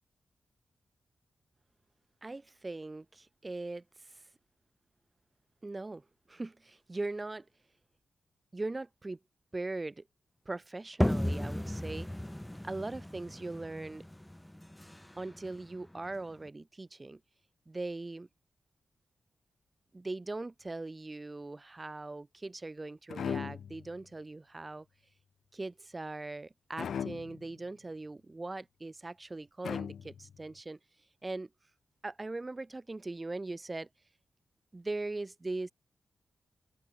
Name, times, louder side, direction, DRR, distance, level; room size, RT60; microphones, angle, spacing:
voice 1, 2.2-4.3 5.6-7.5 8.5-9.2 9.5-10.0 10.5-12.1 12.6-14.0 15.2-17.2 17.7-18.3 19.9-24.9 25.5-31.5 32.0-33.9 34.7-35.7, right 2 dB, 30° right, 2.4 m, -40 dB
sound 1, 11.0-16.5, left 1 dB, 10° left, 2.6 m, -35 dB
sound 2, 23.1-24.0 26.8-27.5 29.6-30.4, left 7 dB, 75° left, 0.5 m, -38 dB
supercardioid pair, 40°, 0 cm